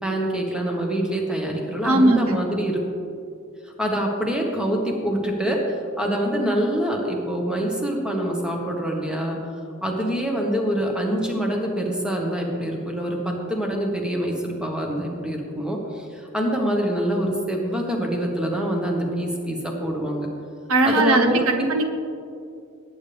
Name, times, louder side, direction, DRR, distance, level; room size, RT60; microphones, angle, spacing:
voice 1, 0.0-2.8 3.8-5.6 6.0-9.4 9.8-20.3 20.8-21.7, equal, 5° right, 0 dB, 1.5 m, -25 dB
voice 2, 1.8-2.4 20.7-21.9, right 2 dB, 75° right, 5 dB, 0.9 m, -19 dB
19.0 x 8.7 x 3.5 m, 2.4 s
head